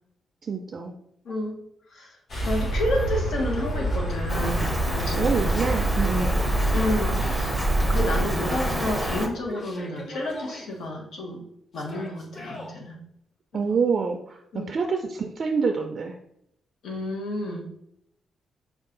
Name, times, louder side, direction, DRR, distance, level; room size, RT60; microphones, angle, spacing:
voice 1, 0.4-0.9 5.2-6.4 13.5-16.2, right 5 dB, 45° right, 4 dB, 0.3 m, -26 dB
voice 2, 1.2-1.6 1.9-2.1 2.4-5.7 6.7-7.5 7.9-11.4 11.7-13.0 13.5-13.8 14.5-14.7 16.8-17.7, left 1 dB, 80° left, 1 dB, 1.0 m, -30 dB
sound 1, 2.3-8.2, right 1 dB, 55° left, 1.4 m, -26 dB
Yell, 3.4-4.7 5.4-7.2 8.0-9.1 9.5-10.7 11.7-12.7, left 1 dB, 35° left, 0.9 m, -41 dB
Rain, 4.3-9.3, equal, 5° left, 0.6 m, -28 dB
5.4 x 2.3 x 3.8 m, 0.76 s
cardioid pair, 130°, 0 cm